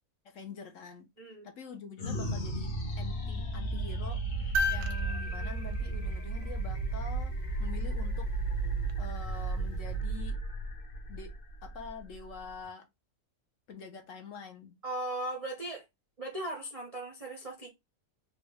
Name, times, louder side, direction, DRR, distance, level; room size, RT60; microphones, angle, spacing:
voice 1, 0.2-1.1 1.4-8.3 9.0-10.4 11.1-11.3 11.6-12.9 13.7-14.8, left 5 dB, 65° left, 1.0 m, -46 dB
voice 2, 1.2-1.5 14.8-15.8 16.2-17.7, right 1 dB, 45° right, 0.5 m, -37 dB
sound 1, 2.0-12.7, right 2 dB, 45° left, 0.9 m, -34 dB
sound 2, 4.5-6.9 8.9-9.0, left 1 dB, 90° right, 1.1 m, -35 dB
4.1 x 2.3 x 3.3 m
omnidirectional pair, 1.6 m